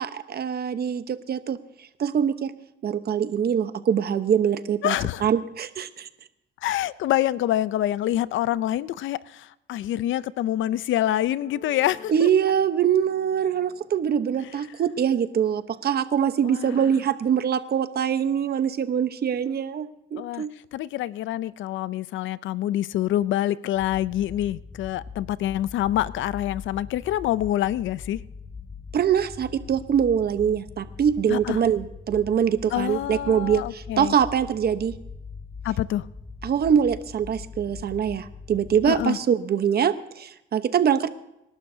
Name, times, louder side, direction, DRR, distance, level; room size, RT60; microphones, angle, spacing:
voice 1, 0.0-1.6 2.0-2.5 2.8-5.0 5.2-6.1 12.1-20.5 28.9-34.9 36.4-41.1, right 8 dB, 55° right, 11 dB, 0.9 m, -23 dB
voice 2, 4.8-5.2 6.6-12.3 16.4-16.8 20.2-20.4 20.7-28.2 31.3-31.6 32.7-34.1 35.6-36.0 38.9-39.2, left 13 dB, 75° left, 18 dB, 0.5 m, -26 dB
sound 1, 11.0-15.1 15.5-17.1, left 6 dB, 45° left, 3.8 m, -51 dB
sound 2, 23.7-39.1, left 4 dB, 15° left, 0.9 m, -42 dB
26.5 x 12.0 x 2.7 m, 0.87 s
cardioid pair, 90°, 20 cm